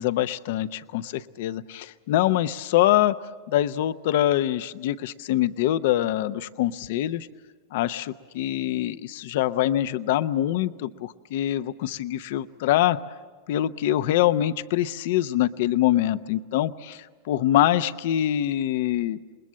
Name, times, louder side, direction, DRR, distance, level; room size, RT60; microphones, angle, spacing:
voice 1, 0.0-3.2 3.5-7.3 7.7-13.0 13.5-19.2, left 13 dB, 70° left, 13 dB, 0.7 m, -24 dB
28.0 x 20.5 x 7.5 m, 1.4 s
hypercardioid pair, 120°, 0 cm